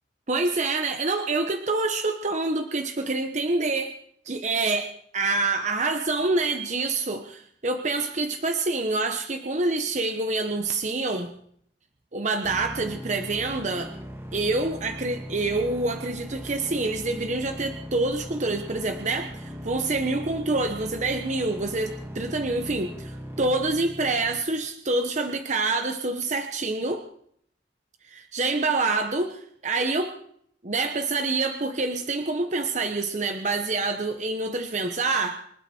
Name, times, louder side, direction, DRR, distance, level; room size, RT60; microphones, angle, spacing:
voice 1, 0.3-3.9 4.2-11.3 12.1-13.9 14.3-27.1 28.0-30.1 30.6-35.5, right 3 dB, 45° right, 6 dB, 1.0 m, -27 dB
sound 1, 12.4-24.4, equal, 15° right, 1.6 m, -39 dB
26.5 x 12.0 x 4.4 m, 0.67 s
head